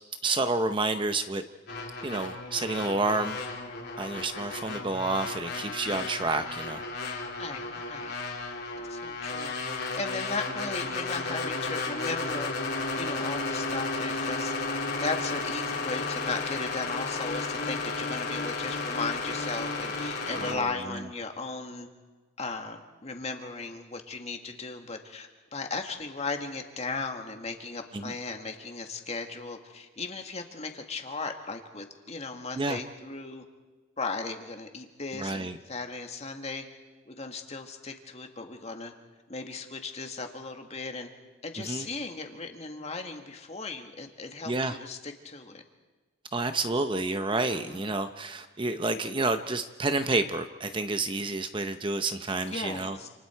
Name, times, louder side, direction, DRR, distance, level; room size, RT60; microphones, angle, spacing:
voice 1, 0.2-1.4 2.0-3.4 4.0-6.8 20.4-21.0 27.9-28.1 32.5-32.8 35.1-35.6 41.6-41.9 44.5-44.8 46.3-53.0, right 3 dB, 25° right, 9 dB, 0.8 m, -29 dB
sound 1, 1.7-20.5, left 3 dB, 55° left, 3.3 m, -33 dB
voice 2, 7.4-8.1 8.8-9.5 9.8-12.5 13.0-21.9 22.4-33.4 34.0-36.6 37.1-38.9 39.3-41.1 41.4-45.6 47.7-47.8 52.4-53.1, left 3 dB, 30° left, 4 dB, 2.0 m, -36 dB
29.0 x 28.0 x 4.6 m, 1.3 s
head